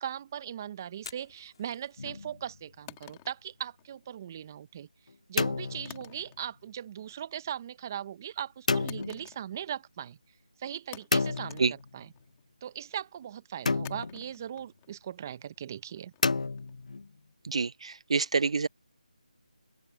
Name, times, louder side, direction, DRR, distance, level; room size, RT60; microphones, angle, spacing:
voice 1, 0.0-4.9 5.3-10.2 10.6-12.1 12.6-16.1, right 9 dB, 25° right, 1.1 m, -39 dB
Fire, 0.9-14.8, left 6 dB, 35° left, 2.9 m, -60 dB
sound 1, 2.0-2.5 5.1-6.3 8.7-9.3 11.1-12.1 13.7-14.3 16.2-17.1, left 4 dB, 60° left, 0.7 m, -31 dB
sound 2, 2.9-4.3 5.9-6.7 7.0-7.5 8.9-9.8 10.1-10.2 10.9-12.4 13.8-16.9, left 23 dB, 15° left, 3.0 m, -52 dB
voice 2, 17.4-18.7, right 4 dB, 45° right, 0.4 m, -27 dB
open air
figure-of-eight pair, 165°, 4 cm